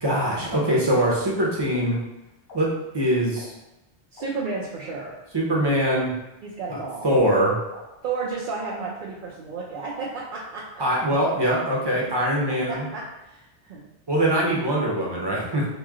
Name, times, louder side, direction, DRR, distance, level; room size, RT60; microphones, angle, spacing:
voice 1, 0.0-2.0 2.5-3.5 5.3-6.1 6.7-6.8 7.0-7.5 10.8-12.9 14.1-15.7, right 1 dB, 25° right, -4 dB, 0.8 m, -22 dB
sound 1, 1.7-1.8 2.5-2.6 3.4-3.5 4.2-4.3 5.1-5.2 5.9-6.0 6.8-6.9 7.7-7.8 8.7-8.8, left 3 dB, 75° left, 0.9 m, -44 dB
voice 2, 4.1-5.2 6.4-7.1 8.0-10.8 12.5-13.9 14.8-14.9, right 4 dB, 60° right, -4 dB, 0.7 m, -33 dB
3.0 x 2.9 x 3.6 m, 0.96 s
omnidirectional pair, 1.0 m